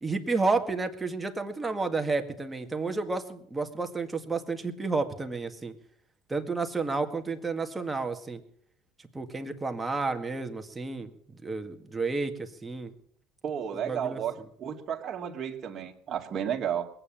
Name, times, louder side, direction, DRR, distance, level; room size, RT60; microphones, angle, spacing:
voice 1, 0.0-5.7 6.3-8.4 9.1-11.1 11.4-12.9 13.9-14.2, right 3 dB, 15° right, 6 dB, 2.0 m, -31 dB
voice 2, 13.4-16.9, right 8 dB, 45° right, 2 dB, 2.3 m, -32 dB
20.5 x 8.9 x 7.5 m, 0.65 s
hypercardioid pair, 85°, 0 cm